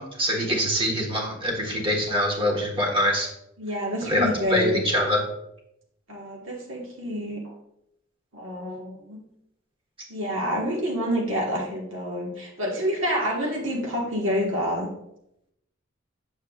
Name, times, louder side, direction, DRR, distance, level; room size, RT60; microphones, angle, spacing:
voice 1, 0.0-3.3 4.0-5.2, equal, 25° right, 1 dB, 1.4 m, -24 dB
voice 2, 3.6-4.8 6.1-7.5 8.3-9.2 10.1-14.9, equal, 85° right, -2 dB, 1.4 m, -28 dB
7.9 x 7.0 x 2.4 m, 0.79 s
head